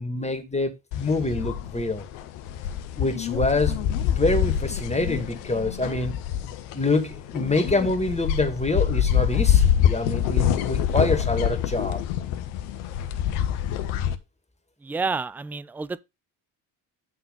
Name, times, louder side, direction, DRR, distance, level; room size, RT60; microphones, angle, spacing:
voice 1, 0.0-2.0 3.0-6.1 6.7-12.0, left 2 dB, 15° left, 2.4 m, -26 dB
sound 1, 0.9-14.1, left 10 dB, 85° left, 1.0 m, -25 dB
voice 2, 14.8-16.0, right 4 dB, 5° right, 0.4 m, -29 dB
9.9 x 3.9 x 5.5 m
hypercardioid pair, 50°, 48 cm